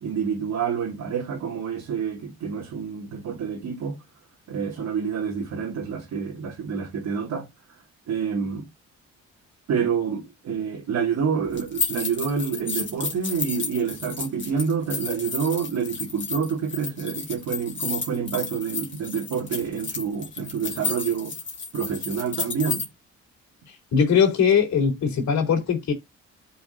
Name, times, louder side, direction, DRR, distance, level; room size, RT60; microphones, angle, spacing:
voice 1, 0.0-4.0 4.5-7.5 8.1-8.7 9.7-21.4 21.7-22.9, right 6 dB, 65° right, 2.4 m, -28 dB
sound 1, 11.5-22.8, left 5 dB, 40° left, 2.8 m, -32 dB
voice 2, 23.9-25.9, left 7 dB, 65° left, 3.9 m, -20 dB
13.0 x 5.7 x 2.7 m
cardioid pair, 90°, 30 cm